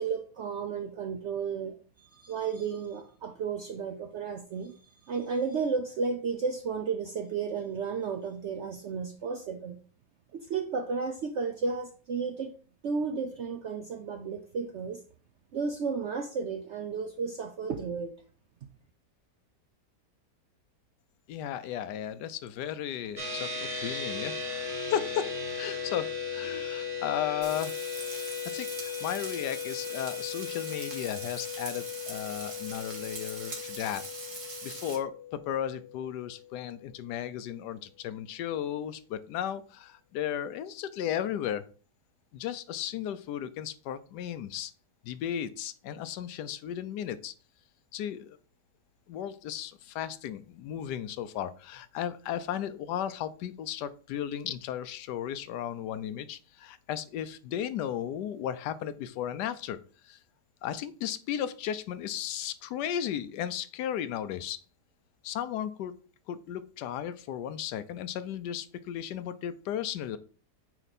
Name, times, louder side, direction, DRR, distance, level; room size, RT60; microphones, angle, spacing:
voice 1, 0.0-4.7 5.0-9.8 10.3-12.5 12.8-15.0 15.5-18.1, right 5 dB, 70° right, 5 dB, 0.6 m, -33 dB
voice 2, 21.3-25.3 25.6-27.8 28.5-34.0 34.6-41.6 42.3-44.7 45.0-47.3 47.9-48.4 49.1-59.8 60.0-60.2 60.6-64.6 65.2-65.9 66.3-70.2, left 10 dB, 80° left, 13 dB, 1.1 m, -35 dB
sound 1, 23.2-36.8, left 6 dB, 25° right, 1.3 m, -37 dB
Frying (food), 27.4-35.0, right 3 dB, 50° right, 1.8 m, -42 dB
8.7 x 3.0 x 4.1 m, 0.39 s
omnidirectional pair, 1.8 m